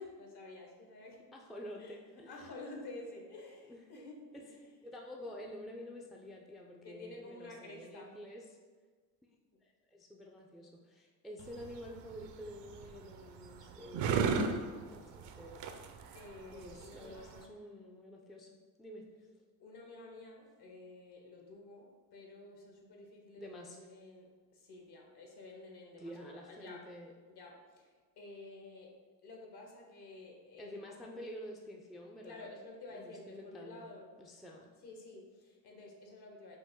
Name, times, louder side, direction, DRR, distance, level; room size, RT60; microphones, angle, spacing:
voice 1, 0.0-1.3 1.8-2.0 2.3-4.3 5.2-5.3 6.8-8.2 16.1-17.6 19.6-26.9 27.3-31.2 32.2-34.2 34.8-36.6, left 2 dB, 55° left, 1 dB, 1.2 m, -51 dB
voice 2, 1.3-2.3 3.7-4.0 4.3-4.4 4.8-8.4 9.6-15.7 16.5-18.5 18.8-19.1 23.4-23.8 26.0-27.1 30.6-32.5 32.9-33.9 34.2-34.7, equal, ahead, -1 dB, 0.4 m, -49 dB
sound 1, 11.4-17.5, right 5 dB, 60° right, 0.6 m, -37 dB
5.2 x 2.6 x 3.7 m, 1.4 s
supercardioid pair, 75°, 47 cm